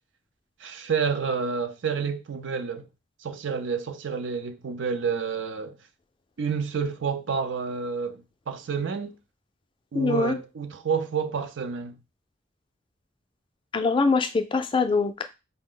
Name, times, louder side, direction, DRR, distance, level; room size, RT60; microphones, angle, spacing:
voice 1, 0.6-2.9 3.2-5.8 6.4-9.2 9.9-12.0, right 6 dB, 75° right, 0.5 m, -29 dB
voice 2, 9.9-10.4 13.7-15.2, left 4 dB, 25° left, 0.4 m, -23 dB
4.5 x 2.0 x 3.8 m
head